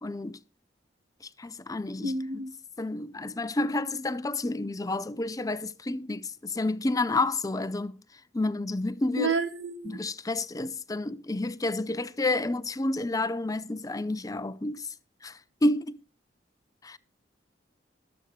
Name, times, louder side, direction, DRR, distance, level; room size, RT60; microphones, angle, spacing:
voice 1, 0.0-0.4 1.2-2.1 2.8-8.0 8.3-9.3 9.8-14.9 15.2-16.0 16.8-17.0, left 2 dB, 20° left, 0.5 m, -30 dB
voice 2, 2.0-2.5 9.2-10.0, right 3 dB, 85° right, 1.5 m, -30 dB
22.5 x 8.0 x 3.2 m
head